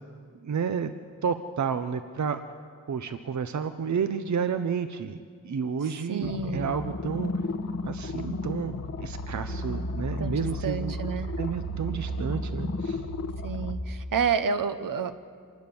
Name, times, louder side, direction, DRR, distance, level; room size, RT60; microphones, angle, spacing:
voice 1, 0.4-0.9 1.2-2.4 2.9-7.3 7.8-10.9 11.4-13.1, right 6 dB, 55° right, 9 dB, 0.8 m, -31 dB
voice 2, 6.1-6.7 10.2-11.3 13.4-15.1, right 6 dB, 75° right, 10 dB, 1.1 m, -29 dB
sound 1, 6.2-13.8, left 1 dB, 50° left, 1.1 m, -33 dB
26.5 x 20.0 x 7.1 m, 2.1 s
wide cardioid pair, 160°, 34 cm